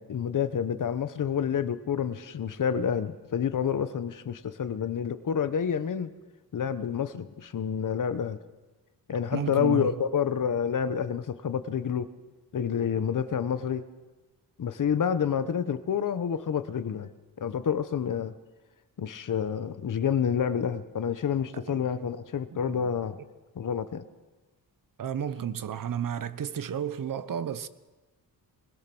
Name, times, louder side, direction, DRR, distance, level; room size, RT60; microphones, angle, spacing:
voice 1, 0.0-6.1 6.5-8.4 9.1-12.1 12.5-13.8 14.6-17.1 17.4-18.3 19.0-23.2 23.5-24.0, left 7 dB, 60° left, 1.2 m, -28 dB
voice 2, 9.3-9.9 21.5-21.9 22.7-22.9 25.0-27.7, right 8 dB, 60° right, 1.1 m, -32 dB
23.0 x 21.5 x 6.2 m
wide cardioid pair, 115°, 36 cm